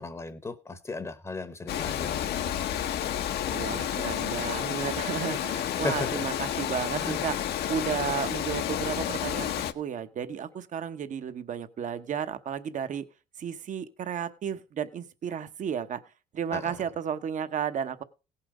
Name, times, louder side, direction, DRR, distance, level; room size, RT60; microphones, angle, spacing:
voice 1, 0.0-2.6 5.8-6.3 6.9-7.3 16.5-16.8, left 3 dB, 20° left, 12 dB, 0.9 m, -36 dB
Water, 1.7-9.7, left 10 dB, 70° left, 1.0 m, -30 dB
voice 2, 3.5-7.4 7.7-13.0 13.4-16.0 16.3-18.0, right 8 dB, 50° right, 11 dB, 1.0 m, -33 dB
17.0 x 5.8 x 4.9 m, 0.32 s
cardioid pair, 110°, 17 cm